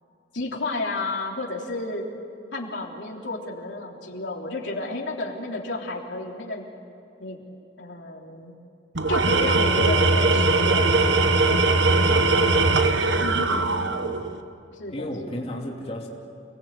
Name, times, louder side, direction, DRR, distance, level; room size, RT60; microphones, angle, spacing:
voice 1, 0.3-2.1 2.5-6.7 7.2-7.4 7.8-8.5 9.1-11.2 13.2-14.0 14.8-15.1, left 2 dB, 80° left, -1 dB, 3.4 m, -32 dB
Tools, 8.9-14.3, right 3 dB, 80° right, 1.3 m, -20 dB
voice 2, 12.0-13.6 14.0-14.2 14.9-16.1, left 1 dB, 35° left, -2 dB, 2.9 m, -36 dB
29.5 x 19.0 x 8.4 m, 2.6 s
head